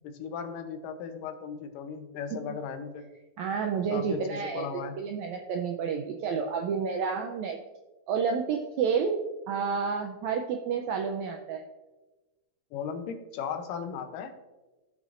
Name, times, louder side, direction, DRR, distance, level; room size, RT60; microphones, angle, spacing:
voice 1, 0.0-3.1 3.9-5.0 12.7-14.3, left 6 dB, 80° left, 7 dB, 2.4 m, -36 dB
voice 2, 3.4-7.6 8.1-9.2 9.5-11.6, right 6 dB, 85° right, 3 dB, 1.6 m, -30 dB
14.5 x 6.6 x 2.5 m, 1.1 s
omnidirectional pair, 3.9 m